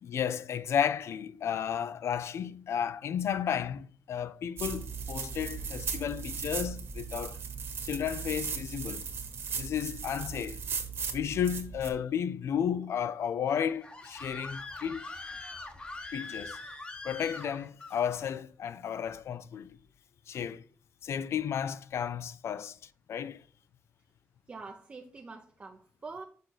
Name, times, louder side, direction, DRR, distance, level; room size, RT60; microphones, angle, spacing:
voice 1, 0.0-7.4 7.8-9.1 9.5-10.6 11.1-15.1 16.1-16.6 17.0-19.7 20.3-20.6 21.0-23.4, left 8 dB, 70° left, 0.5 m, -33 dB
sound 1, 4.6-11.9, right 6 dB, 55° right, 1.6 m, -37 dB
Screaming, 13.5-18.0, left 2 dB, 20° left, 1.0 m, -43 dB
voice 2, 24.5-26.2, right 4 dB, 30° right, 0.6 m, -45 dB
6.5 x 6.5 x 4.1 m
wide cardioid pair, 170°, 5 cm